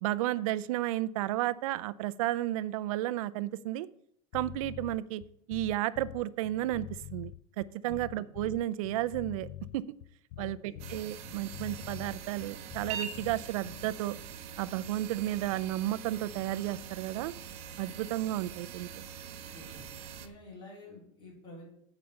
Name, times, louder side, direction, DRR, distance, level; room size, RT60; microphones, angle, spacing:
voice 1, 0.0-3.9 4.3-5.2 5.5-6.9 7.1-7.3 7.6-9.5 9.7-9.8 10.4-14.2 14.6-17.3 17.8-18.9, right 15 dB, 85° right, 16 dB, 0.5 m, -32 dB
sound 1, 4.3-13.9, left 14 dB, 50° left, 0.4 m, -45 dB
voice 2, 7.8-8.2 10.4-10.8 19.5-19.8 20.2-21.7, left 1 dB, 30° left, -3 dB, 3.8 m, -50 dB
sound 2, 10.8-20.3, right 7 dB, 40° right, 0.8 m, -44 dB
8.7 x 5.0 x 6.9 m, 0.70 s
supercardioid pair, 175°, 17 cm